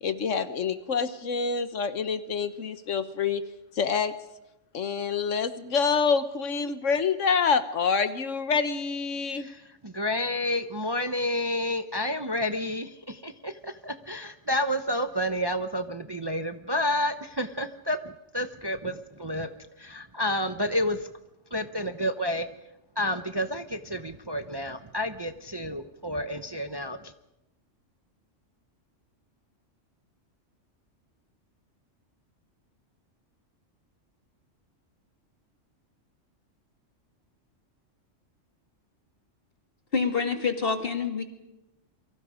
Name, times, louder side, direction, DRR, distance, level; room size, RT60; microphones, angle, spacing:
voice 1, 0.0-3.4 3.7-4.1 4.7-9.5, left 5 dB, 75° left, 11 dB, 1.4 m, -27 dB
voice 2, 9.8-18.0 18.3-19.5 19.8-21.1 21.5-22.5 23.0-27.0, left 1 dB, 25° right, 9 dB, 0.7 m, -30 dB
voice 3, 39.9-41.2, left 5 dB, 45° left, 6 dB, 2.3 m, -27 dB
28.5 x 24.0 x 5.0 m, 0.94 s
omnidirectional pair, 1.3 m